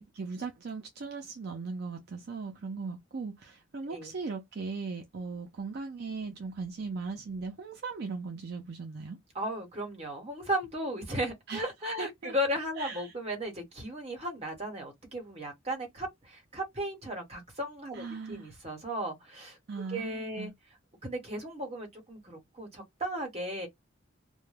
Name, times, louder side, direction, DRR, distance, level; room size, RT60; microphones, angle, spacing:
voice 1, 0.0-9.2 11.5-11.7 12.0-12.3 12.8-13.1 17.9-18.6 19.7-20.5, right 4 dB, 50° right, 0.4 m, -38 dB
voice 2, 9.3-19.6 19.9-20.5 21.0-23.7, equal, 30° right, 1.1 m, -35 dB
2.2 x 2.1 x 3.2 m
head